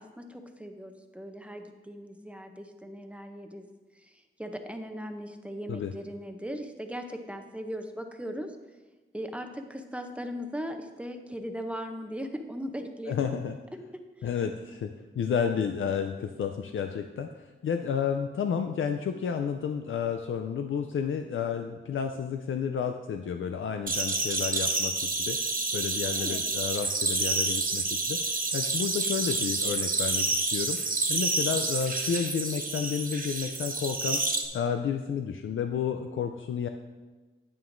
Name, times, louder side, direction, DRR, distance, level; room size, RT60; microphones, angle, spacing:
voice 1, 0.0-3.7 3.9-8.6 9.1-13.3 14.2-14.3 26.1-26.4, equal, 5° right, 5 dB, 0.6 m, -38 dB
voice 2, 13.1-13.6 14.2-14.9 15.2-30.8 31.1-34.2 34.5-36.7, left 7 dB, 75° left, 6 dB, 0.4 m, -31 dB
sound 1, 23.9-34.4, right 3 dB, 45° right, 0.8 m, -29 dB
9.2 x 8.8 x 2.6 m, 1.2 s
wide cardioid pair, 115°, 21 cm